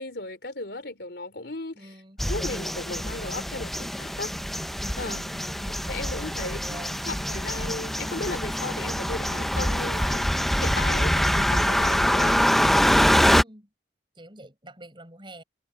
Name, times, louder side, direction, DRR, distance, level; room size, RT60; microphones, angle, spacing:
voice 1, 0.0-1.9 2.3-4.3 5.0-5.3 5.9-10.3 10.6-12.5, left 2 dB, 65° left, 3.4 m, -36 dB
voice 2, 1.7-2.2 5.2-5.6 6.4-7.0 13.4-13.7 14.1-15.4, right 1 dB, 25° right, 6.9 m, -46 dB
sound 1, 2.2-13.4, equal, ahead, 0.5 m, -24 dB
head